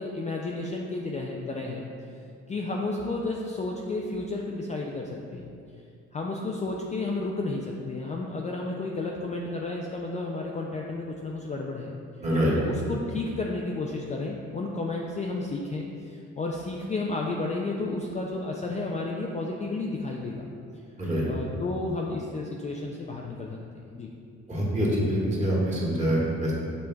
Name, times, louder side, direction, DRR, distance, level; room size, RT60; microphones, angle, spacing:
voice 1, 0.0-1.9 2.5-5.5 6.1-11.9 12.5-20.5 21.3-24.1, left 2 dB, 25° left, -1 dB, 0.4 m, -32 dB
voice 2, 12.2-12.5 21.0-21.3 24.5-26.5, equal, 25° right, -6 dB, 1.4 m, -25 dB
7.4 x 3.2 x 2.3 m, 2.4 s
cardioid pair, 90°, 30 cm